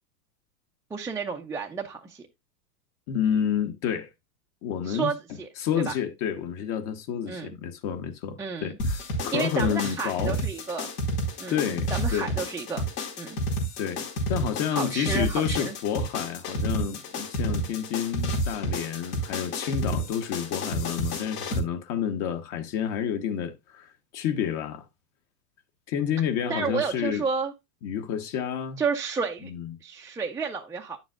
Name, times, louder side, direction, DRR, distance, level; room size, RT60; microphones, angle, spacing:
voice 1, 0.9-2.3 4.9-5.5 5.9-6.0 7.3-7.5 8.4-8.8 9.3-10.9 11.4-12.8 13.2-13.4 14.7-15.8 26.5-27.5 28.8-29.5 29.8-31.0, right 5 dB, 5° right, 0.4 m, -31 dB
voice 2, 3.1-4.1 4.6-5.1 5.6-10.4 11.5-12.3 13.8-14.0 14.3-24.8 25.9-27.2 27.8-28.8 29.4-29.7, left 8 dB, 50° left, 1.3 m, -29 dB
sound 1, 8.8-21.6, left 1 dB, 80° left, 4.5 m, -30 dB
9.4 x 7.4 x 2.4 m
hypercardioid pair, 110°, 47 cm